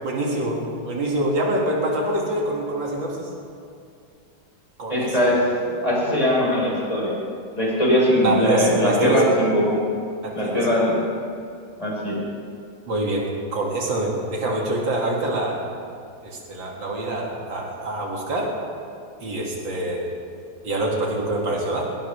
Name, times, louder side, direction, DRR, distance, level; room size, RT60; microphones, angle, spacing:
voice 1, 0.0-3.3 4.8-5.3 8.2-9.5 10.2-10.7 12.9-15.6 16.2-18.6 19.2-20.1 20.6-21.9, right 1 dB, 90° right, -2 dB, 3.1 m, -25 dB
voice 2, 4.9-7.2 7.6-9.8 10.3-11.0 11.8-12.2, equal, 20° left, -6 dB, 5.1 m, -21 dB
21.0 x 19.0 x 3.5 m, 2.4 s
omnidirectional pair, 2.0 m